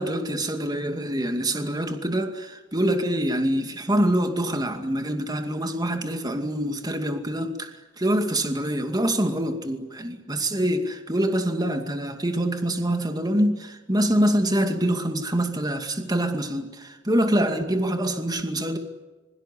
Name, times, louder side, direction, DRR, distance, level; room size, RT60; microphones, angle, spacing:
voice 1, 0.0-18.8, right 1 dB, 20° right, 6 dB, 2.4 m, -25 dB
26.0 x 23.0 x 8.5 m, 1.2 s
head